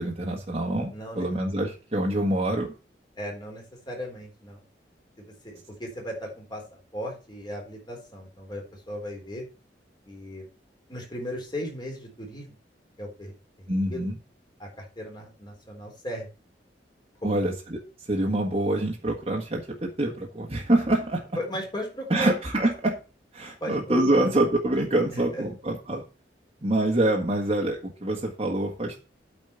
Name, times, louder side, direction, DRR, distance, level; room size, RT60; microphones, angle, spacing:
voice 1, 0.0-2.7 13.7-14.1 17.2-17.8 18.1-21.2 22.1-23.0 23.3-26.0 26.6-29.0, right 1 dB, 35° right, -1 dB, 1.6 m, -25 dB
voice 2, 0.9-1.3 3.2-4.6 5.2-6.6 6.9-9.4 10.1-10.5 10.9-12.5 13.0-14.1 14.6-16.3 17.2-17.4 21.4-22.3 23.6-24.3 25.1-25.4, equal, 25° left, 0 dB, 3.9 m, -36 dB
8.8 x 5.1 x 7.0 m, 0.33 s
head